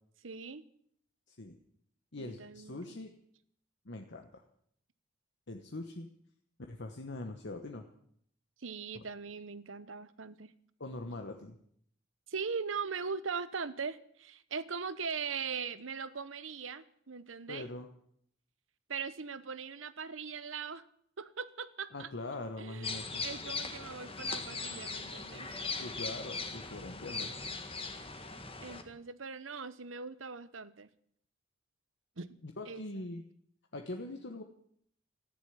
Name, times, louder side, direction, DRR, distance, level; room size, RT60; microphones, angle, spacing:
voice 1, 0.2-0.6 2.2-3.0 8.6-10.5 12.3-17.7 18.9-20.8 21.2-22.1 22.6-25.6 28.6-30.9 32.2-32.4 32.7-33.1 34.0-34.2, right 5 dB, 75° right, 15 dB, 1.0 m, -40 dB
voice 2, 1.3-1.6 2.1-3.1 3.8-4.4 5.5-6.1 6.7-7.8 10.8-11.6 17.5-17.9 21.9-23.2 25.8-27.3 32.4-33.2 33.7-34.4, left 2 dB, 60° left, 4 dB, 1.3 m, -42 dB
sound 1, 22.8-28.8, left 4 dB, 30° left, 1.7 m, -39 dB
14.5 x 10.0 x 9.5 m, 0.67 s
head